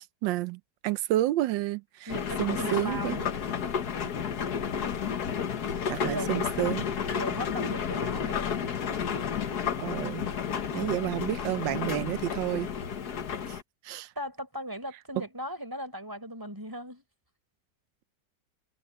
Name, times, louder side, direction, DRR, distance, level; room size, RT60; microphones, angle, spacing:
voice 1, 0.0-2.1 2.4-3.2 5.9-6.9 9.8-10.2 10.7-12.7 13.5-13.6 13.8-14.1 15.2-15.3, right 15 dB, 90° right, 1.3 m, -30 dB
sound 1, 2.1-13.6, left 7 dB, 60° left, 1.8 m, -31 dB
voice 2, 2.1-3.5 6.1-6.4 7.1-8.5 14.2-17.0, equal, 10° right, 4.5 m, -37 dB
omnidirectional pair, 1.9 m